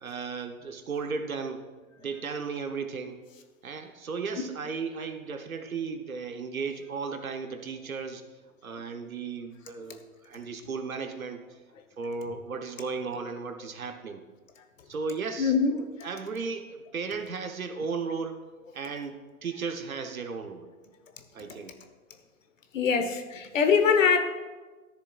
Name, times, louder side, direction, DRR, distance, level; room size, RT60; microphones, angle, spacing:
voice 1, 0.0-1.6 2.0-3.2 3.6-8.2 8.6-11.4 12.0-14.2 14.9-15.5 16.0-18.4 18.7-20.7 21.3-21.7, right 5 dB, 75° right, 7 dB, 1.0 m, -35 dB
voice 2, 15.4-15.9 21.5-21.6 22.7-24.2, left 6 dB, 65° left, 6 dB, 1.1 m, -23 dB
13.0 x 6.9 x 2.4 m, 1.3 s
figure-of-eight pair, 105°, 42 cm